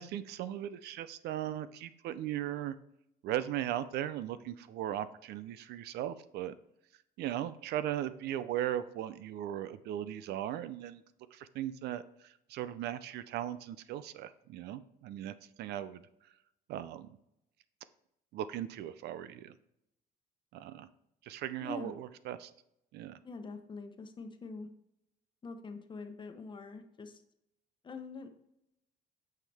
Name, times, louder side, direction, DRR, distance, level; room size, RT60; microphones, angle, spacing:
voice 1, 0.0-2.8 3.2-6.5 7.2-11.0 11.3-16.0 16.7-17.1 18.3-19.6 20.5-20.9 21.2-22.5 22.9-23.2, right 12 dB, 75° right, 14 dB, 0.5 m, -38 dB
voice 2, 21.6-21.9 23.2-24.7 25.4-27.2 27.8-28.3, left 3 dB, 30° left, 6 dB, 1.0 m, -44 dB
9.0 x 5.7 x 3.5 m, 0.80 s
cardioid pair, 110°, 17 cm